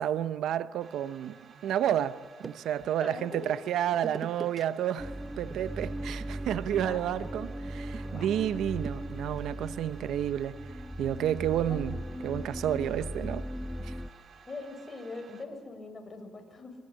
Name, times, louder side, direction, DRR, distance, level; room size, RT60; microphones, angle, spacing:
voice 1, 0.0-10.6 11.0-13.5 13.8-14.0, right 10 dB, 80° right, 0.8 m, -31 dB
sound 1, 0.8-15.5, right 6 dB, 50° right, 3.3 m, -55 dB
sound 2, 1.5-2.9 3.9-4.6 4.9-5.2 5.5-9.5, right 4 dB, 35° right, 1.1 m, -46 dB
voice 2, 3.0-3.5 6.7-7.0 8.1-8.4 11.5-11.8 14.5-16.7, left 3 dB, 25° left, 6.8 m, -42 dB
sound 3, 5.0-14.1, right 1 dB, 5° left, 1.2 m, -38 dB
25.0 x 24.5 x 8.6 m
cardioid pair, 90°, 0 cm